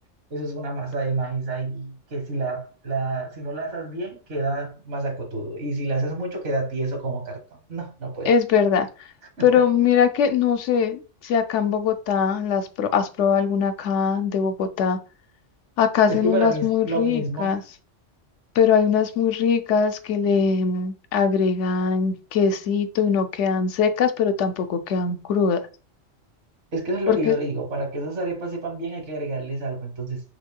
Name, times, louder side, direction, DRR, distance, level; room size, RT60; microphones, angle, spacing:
voice 1, 0.3-7.4 7.7-8.3 9.4-9.6 16.1-17.5 26.7-30.2, right 2 dB, 70° right, 1.5 m, -28 dB
voice 2, 8.3-8.9 9.4-15.0 15.8-17.6 18.6-25.6 27.1-27.4, left 6 dB, 75° left, 0.9 m, -21 dB
6.3 x 2.9 x 2.2 m
omnidirectional pair, 1.3 m